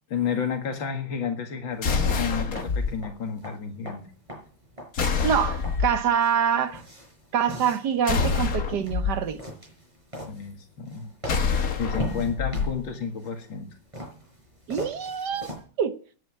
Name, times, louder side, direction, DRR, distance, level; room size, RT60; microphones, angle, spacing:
voice 1, 0.1-4.1 10.3-11.1 11.8-13.7, left 6 dB, 80° left, 2.6 m, -31 dB
sound 1, 1.7-15.6, equal, 15° right, 5.4 m, -41 dB
sound 2, 1.8-2.9 4.9-6.0 8.1-9.1 11.3-12.7, left 5 dB, 50° left, 1.6 m, -26 dB
voice 2, 5.2-6.8 7.3-9.4 14.7-15.5 15.8-16.0, right 8 dB, 65° right, 1.5 m, -25 dB
10.0 x 9.1 x 8.6 m
omnidirectional pair, 2.1 m